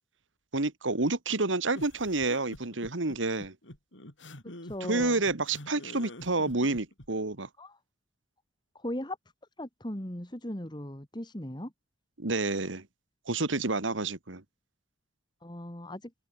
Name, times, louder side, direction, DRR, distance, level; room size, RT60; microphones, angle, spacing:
voice 1, 0.5-3.6 4.9-7.5 12.2-12.9 13.3-14.4, right 3 dB, 85° right, 2.0 m, -29 dB
sound 1, 1.7-7.1, left 1 dB, 80° left, 6.3 m, -46 dB
voice 2, 4.4-5.2 7.6-7.8 8.7-9.2 9.6-11.7 15.4-16.1, left 1 dB, 25° left, 2.3 m, -38 dB
head